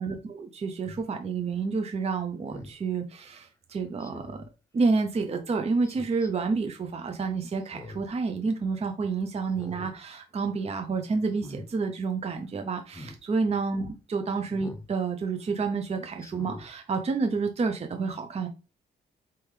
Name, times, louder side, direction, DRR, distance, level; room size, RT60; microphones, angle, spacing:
voice 1, 0.0-4.4 4.7-18.5, right 4 dB, 35° right, 0.6 m, -29 dB
Speech synthesizer, 0.8-1.0 2.5-2.8 4.0-4.5 5.8-6.3 7.6-8.1 8.5-8.6 9.4-10.0 10.3-10.6 11.3-11.7 12.9-13.2 14.5-14.9 15.4-15.5 16.2-16.7 17.1-17.2, left 1 dB, 15° left, 0.8 m, -43 dB
4.4 x 3.5 x 3.2 m
cardioid pair, 100°, 18 cm